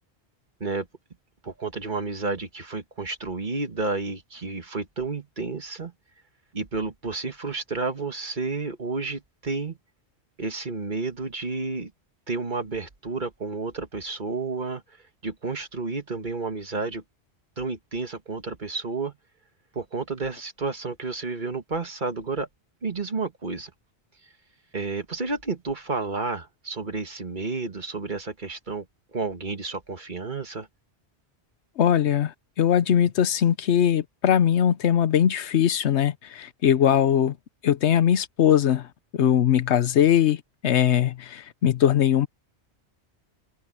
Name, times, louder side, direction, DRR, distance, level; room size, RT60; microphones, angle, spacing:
voice 1, 1.4-5.9 6.5-9.8 10.4-11.9 12.3-14.8 15.2-17.0 17.6-19.1 19.8-22.5 22.8-23.7 24.7-28.9 29.1-30.7, right 3 dB, 45° right, 1.7 m, -31 dB
voice 2, 31.8-37.3 37.6-38.9 39.1-42.3, left 9 dB, 85° left, 1.1 m, -21 dB
open air
omnidirectional pair, 1.1 m